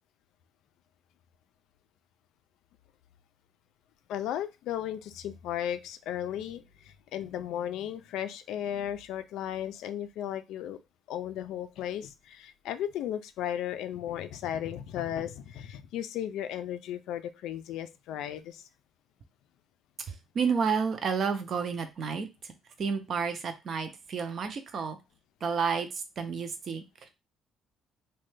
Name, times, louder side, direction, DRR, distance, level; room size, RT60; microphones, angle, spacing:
voice 1, 4.1-10.8 11.1-18.6, left 10 dB, 80° left, 10 dB, 0.3 m, -35 dB
voice 2, 20.3-22.3 22.8-25.0 25.4-25.9 26.2-26.8, right 6 dB, 40° right, 8 dB, 0.5 m, -30 dB
3.1 x 2.2 x 3.2 m, 0.26 s
cardioid pair, 155°, 0 cm